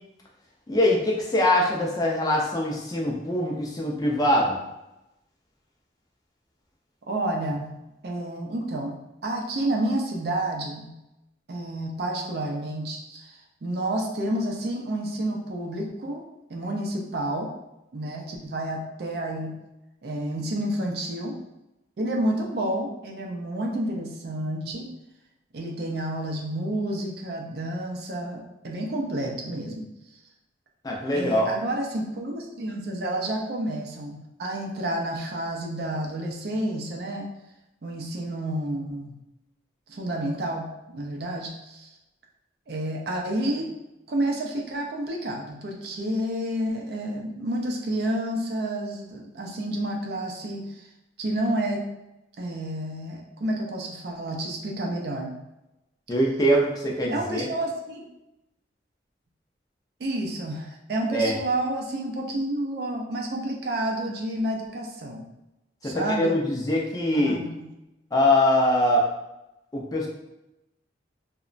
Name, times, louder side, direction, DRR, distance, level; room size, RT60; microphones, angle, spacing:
voice 1, 0.7-4.6 30.8-31.5 56.1-57.5 61.1-61.4 65.8-67.4 68.1-69.1 69.7-70.1, left 1 dB, 20° left, -2 dB, 0.4 m, -23 dB
voice 2, 7.1-7.7 8.0-8.9 9.2-11.0 11.5-16.2 16.5-17.5 17.9-19.6 20.0-21.4 22.0-24.9 25.5-29.9 31.1-37.3 37.8-39.1 39.9-41.9 42.7-43.7 44.1-50.9 51.2-51.8 52.4-55.3 57.1-58.1 60.0-65.3 65.8-66.4 67.2-67.7, right 1 dB, 55° right, 1 dB, 0.4 m, -30 dB
2.9 x 2.1 x 2.4 m, 0.92 s
head